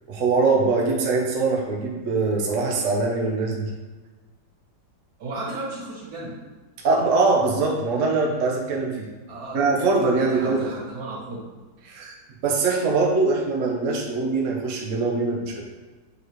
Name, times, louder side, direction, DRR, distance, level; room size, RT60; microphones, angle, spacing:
voice 1, 0.1-3.7 6.8-8.9 9.5-10.7 11.8-12.1 12.4-15.6, right 3 dB, 50° right, -1 dB, 1.0 m, -22 dB
voice 2, 5.2-6.3 9.3-9.6 10.3-11.5, right 2 dB, 90° right, -7 dB, 2.6 m, -34 dB
6.6 x 4.9 x 3.2 m, 1.3 s
omnidirectional pair, 2.2 m